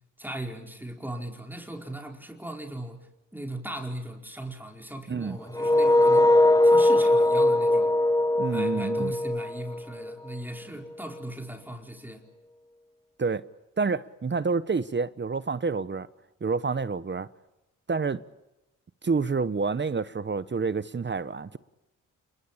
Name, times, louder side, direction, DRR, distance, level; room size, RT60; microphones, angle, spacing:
voice 1, 0.2-3.0 3.3-6.3 6.6-8.0 8.5-12.2, right 1 dB, 5° right, 4.6 m, -38 dB
sound 1, 5.5-10.4, left 1 dB, 10° left, 1.1 m, -21 dB
voice 2, 8.4-9.1 13.2-13.5 13.8-16.1 16.4-17.3 17.9-18.2 19.0-21.6, right 4 dB, 35° right, 1.1 m, -28 dB
29.5 x 21.5 x 8.9 m
cardioid pair, 65°, 33 cm